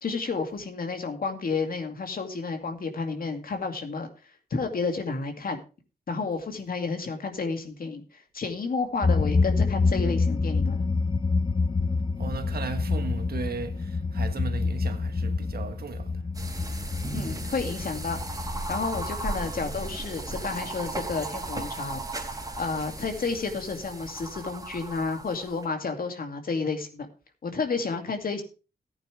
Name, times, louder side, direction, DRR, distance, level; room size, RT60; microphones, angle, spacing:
voice 1, 0.0-4.1 4.5-5.6 6.1-10.8 17.1-18.2 18.7-27.1 27.4-28.4, left 4 dB, 65° left, 2.4 m, -31 dB
sound 1, 9.0-20.0, left 4 dB, 30° left, 0.7 m, -27 dB
voice 2, 12.2-16.2, right 5 dB, 70° right, 1.5 m, -36 dB
sound 2, 16.3-25.7, right 2 dB, 20° right, 3.4 m, -36 dB
14.5 x 8.9 x 3.3 m
cardioid pair, 65°, 16 cm